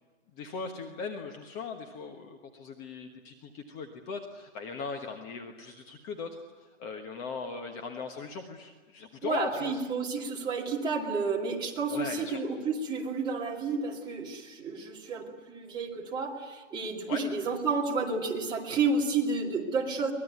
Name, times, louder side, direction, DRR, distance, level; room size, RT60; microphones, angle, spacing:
voice 1, 0.4-6.3 6.8-9.7 11.9-12.4 17.1-17.2, left 4 dB, 20° left, 4 dB, 1.3 m, -38 dB
voice 2, 9.2-20.1, right 4 dB, 10° right, -2 dB, 2.5 m, -31 dB
24.0 x 20.5 x 9.4 m, 1.2 s
hypercardioid pair, 155°, 38 cm